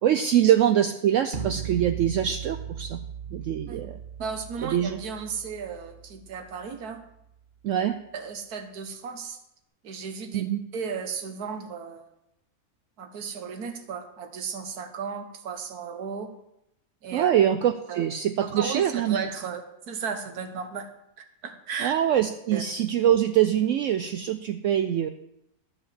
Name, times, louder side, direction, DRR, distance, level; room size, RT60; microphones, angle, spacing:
voice 1, 0.0-3.0 3.3-4.0 4.6-5.0 7.6-8.0 10.3-10.6 17.1-19.2 21.8-25.1, right 10 dB, 70° right, 9 dB, 0.8 m, -24 dB
sound 1, 1.3-7.3, right 8 dB, 40° right, 0.9 m, -38 dB
voice 2, 4.2-7.0 8.1-9.4 9.8-10.5 10.7-12.1 13.0-16.3 17.0-17.3 17.9-18.0 18.4-20.9 21.2-21.9 22.5-22.6, right 6 dB, 85° right, 7 dB, 1.6 m, -35 dB
12.5 x 5.0 x 7.5 m, 0.83 s
omnidirectional pair, 1.6 m